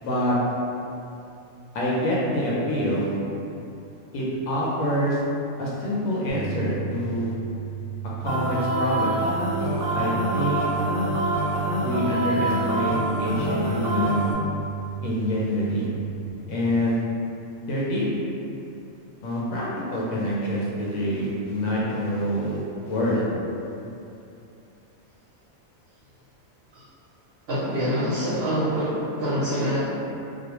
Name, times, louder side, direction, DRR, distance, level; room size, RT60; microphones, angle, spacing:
voice 1, 0.0-0.4 1.7-3.2 4.1-5.2 5.6-7.3 8.2-9.2 9.9-10.7 11.8-14.3 15.0-15.9 16.5-17.0 17.7-18.1 19.2-23.2, equal, 90° left, -6 dB, 1.0 m, -26 dB
sound 1, 6.3-16.3, right 10 dB, 60° left, 0.8 m, -34 dB
sound 2, 8.3-14.3, right 1 dB, 90° right, 1.0 m, -26 dB
voice 2, 27.5-29.8, equal, 60° right, -10 dB, 0.7 m, -25 dB
2.4 x 2.1 x 2.9 m, 2.7 s
omnidirectional pair, 1.4 m